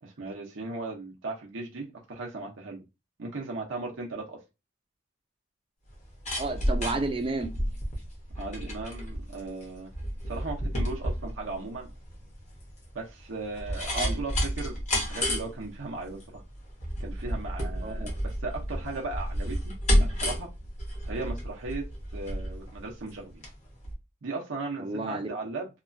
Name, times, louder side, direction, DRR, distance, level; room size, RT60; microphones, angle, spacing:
voice 1, 0.0-2.8 3.2-4.4 8.4-9.9 10.3-11.9 12.9-16.4 17.0-20.5 21.1-21.8 22.1-23.5 24.2-25.7, right 3 dB, 85° right, 0.7 m, -37 dB
sound 1, 5.9-23.5 23.8-23.9, equal, 35° left, 0.8 m, -31 dB
voice 2, 6.4-7.6 13.9-14.2 17.8-18.1 24.8-25.3, right 2 dB, 30° right, 0.4 m, -31 dB
2.9 x 2.3 x 2.5 m
head